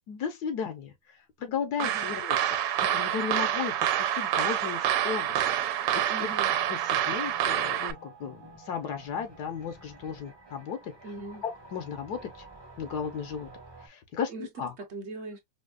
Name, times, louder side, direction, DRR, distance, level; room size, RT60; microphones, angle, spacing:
voice 1, 0.1-0.9 1.4-5.4 5.9-6.0 6.7-10.9 11.4-12.3 12.8-13.5 13.8-14.7, left 7 dB, 70° left, 1.3 m, -35 dB
sound 1, 1.8-7.9, right 10 dB, 85° right, 1.2 m, -27 dB
voice 2, 6.1-6.5 11.0-11.4 14.3-14.5 14.8-15.4, right 3 dB, 55° right, 0.8 m, -40 dB
sound 2, 6.2-13.9, right 3 dB, 25° right, 0.6 m, -50 dB
5.1 x 2.1 x 2.3 m
omnidirectional pair, 1.8 m